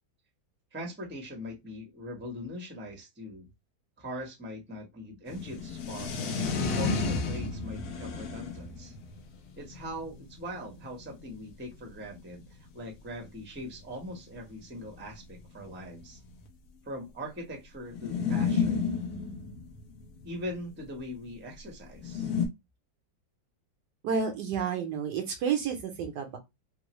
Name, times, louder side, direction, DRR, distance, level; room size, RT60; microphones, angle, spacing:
voice 1, 0.7-3.5 4.0-6.4 6.8-8.9 9.6-16.2 16.8-19.0 20.2-22.3, equal, 10° right, 1 dB, 0.6 m, -41 dB
sound 1, 5.3-11.4 12.1-12.2 12.3-12.4 12.6-12.8 13.7-13.8 14.1-14.2 14.9-16.5 17.9-20.6 22.0-22.5, left 5 dB, 65° left, 1.1 m, -32 dB
voice 2, 24.0-26.4, right 6 dB, 70° right, 5 dB, 1.2 m, -30 dB
3.6 x 2.0 x 3.0 m, 0.21 s
omnidirectional pair, 2.0 m